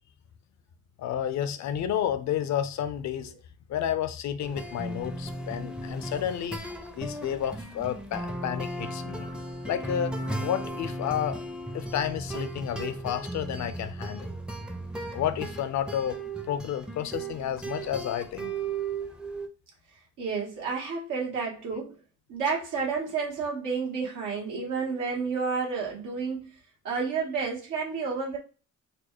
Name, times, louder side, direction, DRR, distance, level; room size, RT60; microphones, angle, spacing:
voice 1, 1.0-3.3 3.7-6.6 7.0-9.3 9.7-11.4 11.7-14.4 15.1-16.2 16.5-18.5, left 10 dB, 65° left, 0.6 m, -31 dB
sound 1, 4.4-19.5, right 2 dB, 5° right, 0.5 m, -36 dB
voice 2, 20.2-21.9 22.3-26.5 26.8-28.4, right 5 dB, 85° right, 1.2 m, -30 dB
4.1 x 2.2 x 2.9 m
cardioid pair, 90°, 30 cm